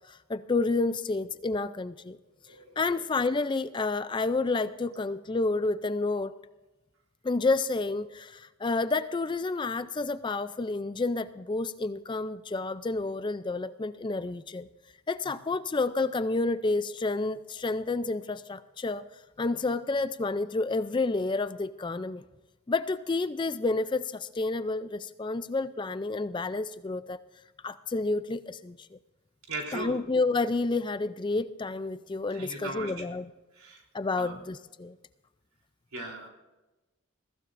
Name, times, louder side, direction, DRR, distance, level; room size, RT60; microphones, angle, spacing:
voice 1, 0.1-2.2 2.8-6.3 7.2-14.7 15.1-19.1 19.4-22.2 22.7-27.2 27.6-29.0 29.7-33.3 33.9-34.9, left 3 dB, 20° left, 13 dB, 0.3 m, -30 dB
voice 2, 2.5-2.8 29.5-30.0 32.3-33.1 33.5-33.8 34.2-34.4 35.9-36.3, right 2 dB, 80° right, 1 dB, 3.5 m, -38 dB
22.0 x 15.5 x 2.6 m, 1.1 s
head